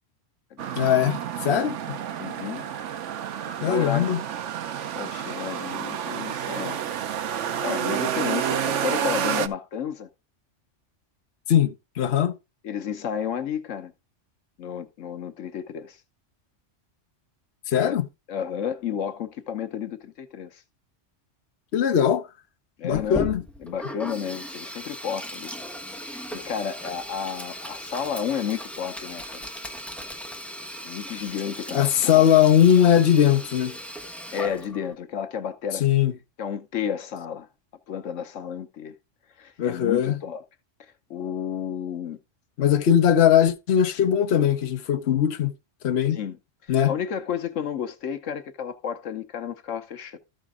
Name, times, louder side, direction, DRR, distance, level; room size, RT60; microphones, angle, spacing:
sound 1, 0.6-9.5, right 9 dB, 75° right, 1.0 m, -29 dB
voice 1, 0.8-2.0 3.6-4.2 11.5-12.3 17.7-18.1 21.7-22.2 22.8-23.4 31.7-33.8 35.8-36.1 39.6-40.2 42.6-45.5 45.8-46.2 46.7-46.9, left 9 dB, 60° left, 1.1 m, -20 dB
voice 2, 2.2-2.7 3.5-4.1 5.0-7.0 7.4-10.1 12.6-13.9 14.6-16.0 17.7-18.0 18.3-20.6 22.8-23.3 23.6-25.5 26.0-29.5 30.8-32.3 34.3-35.9 36.4-37.5 37.9-38.9 39.4-40.4 41.1-42.2 46.1-46.4 46.9-50.2, left 8 dB, 80° left, 1.2 m, -32 dB
Sink (filling or washing), 22.9-34.9, equal, ahead, 1.0 m, -37 dB
13.5 x 5.1 x 3.6 m
omnidirectional pair, 1.3 m